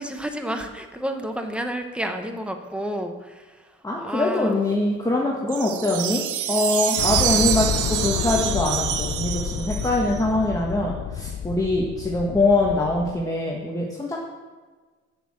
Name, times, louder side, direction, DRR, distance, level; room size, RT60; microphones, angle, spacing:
voice 1, 0.0-4.6, equal, 5° right, 5 dB, 1.0 m, -31 dB
voice 2, 3.8-6.2 6.5-14.2, left 2 dB, 10° left, -2 dB, 1.4 m, -23 dB
sound 1, 5.5-10.2, right 11 dB, 85° right, 0.6 m, -26 dB
sound 2, 7.0-13.2, left 8 dB, 55° left, 0.7 m, -29 dB
6.7 x 6.6 x 7.7 m, 1.4 s
cardioid pair, 90°, 30 cm